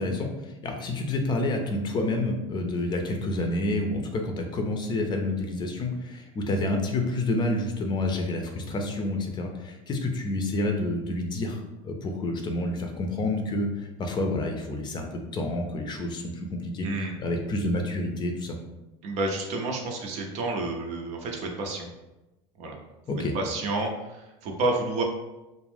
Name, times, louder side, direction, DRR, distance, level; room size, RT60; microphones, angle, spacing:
voice 1, 0.0-16.9 17.2-18.6 23.1-23.3, left 2 dB, 30° left, 3 dB, 0.5 m, -29 dB
voice 2, 19.0-21.9 22.6-22.8 23.3-25.0, right 2 dB, 55° right, 1 dB, 0.6 m, -30 dB
2.5 x 2.1 x 3.3 m, 1.0 s
hypercardioid pair, 90°, 14 cm